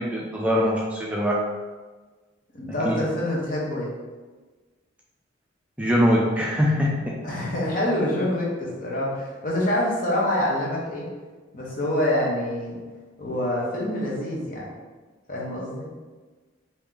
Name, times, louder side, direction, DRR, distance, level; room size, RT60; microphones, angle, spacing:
voice 1, 0.0-1.4 2.8-3.0 5.8-7.2, equal, 5° right, -4 dB, 0.3 m, -22 dB
voice 2, 2.5-3.9 7.2-11.1 11.5-12.8 13.2-14.7 15.3-15.9, left 1 dB, 45° left, -4 dB, 1.0 m, -26 dB
3.1 x 2.8 x 3.7 m, 1.3 s
head